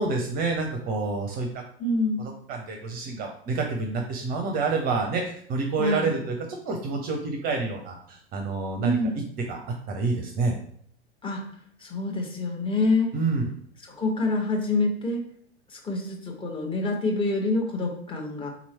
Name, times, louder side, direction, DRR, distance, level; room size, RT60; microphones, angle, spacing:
voice 1, 0.0-1.5 2.2-6.3 6.6-9.1 9.4-10.6 13.1-13.5, right 4 dB, 30° right, 2 dB, 0.7 m, -28 dB
voice 2, 1.8-2.2 5.8-6.1 8.8-9.2 11.2-11.4 11.8-13.1 13.8-15.2 15.7-18.5, left 2 dB, 15° left, 0 dB, 1.1 m, -26 dB
4.0 x 3.0 x 4.3 m, 0.64 s
figure-of-eight pair, 90°, 32 cm